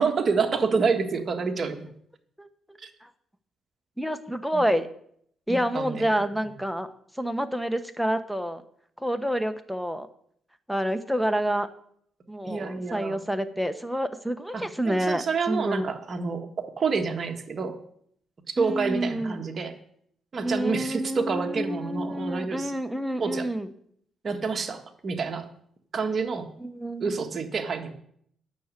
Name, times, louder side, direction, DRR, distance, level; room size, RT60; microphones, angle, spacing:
voice 1, 0.0-1.8 2.8-2.9 4.5-4.7 5.5-6.1 12.4-13.2 14.5-17.8 18.5-19.7 20.3-22.7 23.2-23.5 24.2-25.5 25.9-26.5 27.0-27.9, right 5 dB, 40° right, 4 dB, 1.6 m, -28 dB
voice 2, 4.0-4.9 5.5-6.9 7.2-8.6 9.0-10.1 10.7-11.7 12.3-15.9 18.6-19.4 20.4-23.7 26.6-27.2, equal, ahead, 9 dB, 1.0 m, -28 dB
9.4 x 6.4 x 8.3 m, 0.66 s
cardioid pair, 90°, 0 cm